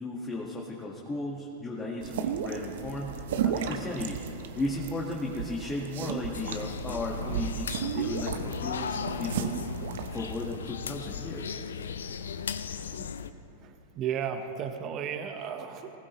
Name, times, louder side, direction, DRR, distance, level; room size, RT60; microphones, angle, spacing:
voice 1, 0.0-4.2 4.5-9.5 10.1-11.6, left 2 dB, 15° left, -3 dB, 1.6 m, -35 dB
sound 1, 2.0-10.6, right 8 dB, 65° right, 0.9 m, -34 dB
sound 2, 6.3-13.3, left 6 dB, 80° left, 0.6 m, -36 dB
voice 2, 13.6-15.9, right 8 dB, 40° right, 7 dB, 1.2 m, -34 dB
20.5 x 16.0 x 3.2 m, 3.0 s
hypercardioid pair, 105°, 0 cm